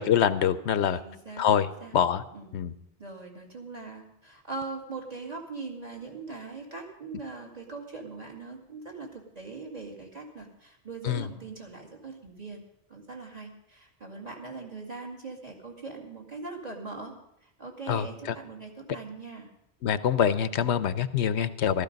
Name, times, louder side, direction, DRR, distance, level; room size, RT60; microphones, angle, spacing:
voice 1, 0.0-1.0 1.4-1.7 1.9-2.2 2.5-2.7 11.0-11.2 17.9-18.1 19.8-21.8, left 8 dB, 85° left, 14 dB, 1.0 m, -24 dB
voice 2, 0.9-2.0 2.3-2.6 3.0-12.6 12.9-17.1 17.4-19.5, right 3 dB, 35° right, 1 dB, 2.3 m, -41 dB
15.0 x 13.0 x 5.2 m, 0.80 s
omnidirectional pair, 1.1 m